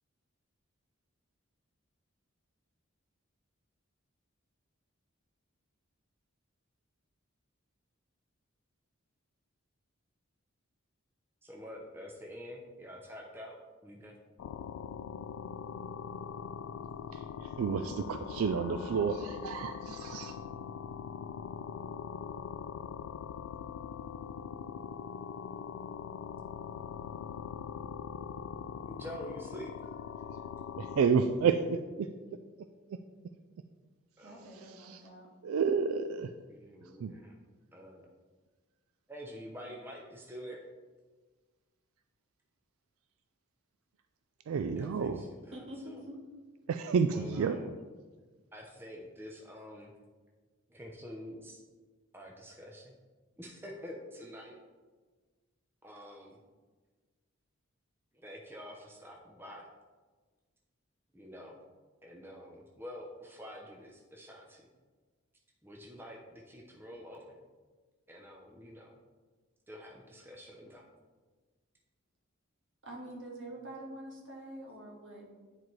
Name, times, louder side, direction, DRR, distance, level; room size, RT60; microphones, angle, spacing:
voice 1, 11.4-14.1 28.9-29.7 34.2-34.5 36.5-37.3 37.7-38.1 39.1-40.6 44.8-45.6 45.9-46.0 47.1-47.7 48.5-49.9 50.7-51.6 52.1-52.9 53.4-54.6 55.8-56.4 58.2-59.7 61.1-61.6 62.0-64.6 65.6-67.4 68.1-69.0 69.7-70.8, equal, 10° right, 0 dB, 0.6 m, -47 dB
sound 1, 14.4-31.1, left 7 dB, 80° left, 0.3 m, -42 dB
voice 2, 17.6-20.3 30.8-32.1 34.9-35.0 35.4-36.3 37.0-37.1 44.5-45.2 46.7-47.6, right 6 dB, 80° right, 9 dB, 0.3 m, -30 dB
voice 3, 34.2-35.3 45.5-46.2 72.8-75.2, right 1 dB, 60° right, -2 dB, 1.7 m, -46 dB
9.6 x 4.5 x 3.1 m, 1.4 s
head